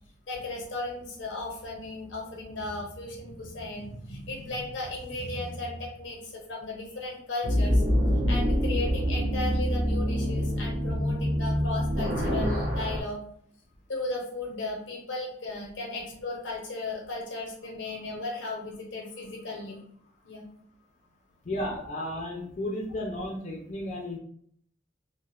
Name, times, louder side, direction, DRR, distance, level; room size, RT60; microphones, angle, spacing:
voice 1, 0.3-7.8 8.3-13.2 13.9-19.8 20.2-20.4, left 2 dB, 90° left, 0 dB, 0.8 m, -36 dB
sound 1, 7.4-13.0, equal, 60° right, 0.6 m, -26 dB
voice 2, 21.5-24.2, left 1 dB, 40° left, -1 dB, 0.4 m, -33 dB
2.9 x 2.0 x 2.3 m, 0.64 s
head